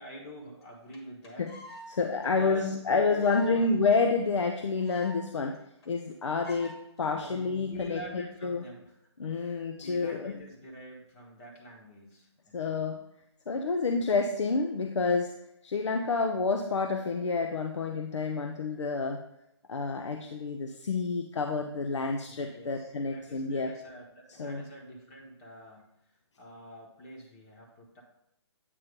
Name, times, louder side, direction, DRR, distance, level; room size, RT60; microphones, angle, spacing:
voice 1, 0.0-1.5 2.2-3.6 7.1-12.9 22.2-25.9 26.4-28.0, left 1 dB, 30° left, -2 dB, 1.2 m, -46 dB
sound 1, 0.6-0.7 0.9-1.0 1.2-1.9 2.2-2.3 2.6-2.7 3.1-3.6 3.9-4.0 4.3-4.4 4.5-5.2 5.5-5.6 5.8-6.1 6.4-6.8 7.4-7.7, equal, 60° left, 1.7 m, -47 dB
voice 2, 1.9-5.6 5.9-8.6 9.2-10.4 12.5-13.0 13.5-15.3 15.6-19.2 19.7-23.7 24.4-24.6, left 4 dB, 80° left, 4 dB, 0.6 m, -29 dB
8.4 x 2.8 x 5.1 m, 0.82 s
hypercardioid pair, 145°, 15 cm